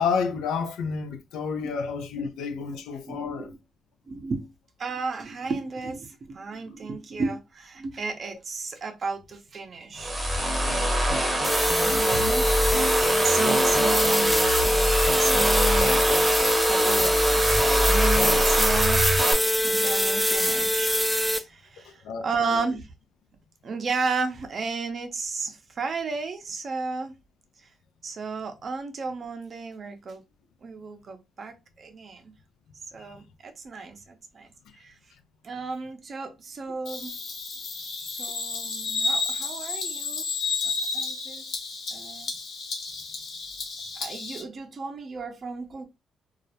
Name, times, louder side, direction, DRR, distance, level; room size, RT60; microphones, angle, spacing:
voice 1, 0.0-3.5 9.9-10.0 11.9-12.0 13.3-13.9 15.3-15.5 19.8-20.0 21.8-22.2 22.5-22.6 33.1-33.2, left 6 dB, 85° left, 0.4 m, -31 dB
voice 2, 2.2-3.6 4.1-4.5 4.8-10.3 11.3-14.3 15.2-16.0 16.6-17.4 17.9-19.0 19.6-20.9 21.4-22.9 23.6-27.1 28.0-30.2 30.6-32.3 32.9-34.5 34.7-35.0 35.4-37.1 38.1-40.3 40.9-41.5 41.9-42.3 44.0-45.9, right 4 dB, 45° right, 0.6 m, -33 dB
sound 1, 10.0-19.3, right 1 dB, 10° right, 0.8 m, -24 dB
sound 2, 11.4-21.4, equal, 5° left, 0.4 m, -23 dB
Bird vocalization bird call bird song, 36.9-44.4, left 4 dB, 65° left, 0.8 m, -32 dB
2.3 x 2.0 x 2.7 m
cardioid pair, 90°, 0 cm